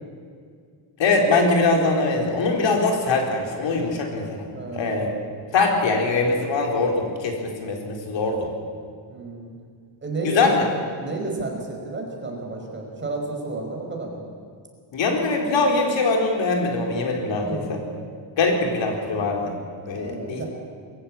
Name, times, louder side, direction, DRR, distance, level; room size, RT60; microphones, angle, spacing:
voice 1, 1.0-4.5 4.8-5.1 5.5-8.5 10.2-10.7 14.9-17.8 18.4-19.5 19.9-20.4, left 3 dB, 70° left, 2 dB, 4.1 m, -22 dB
voice 2, 4.5-5.2 9.1-9.5 10.0-10.5 11.0-14.2 17.3-17.7 19.9-20.5, right 3 dB, 25° right, 0 dB, 5.3 m, -31 dB
24.5 x 15.0 x 8.9 m, 2.1 s
cardioid pair, 140°, 46 cm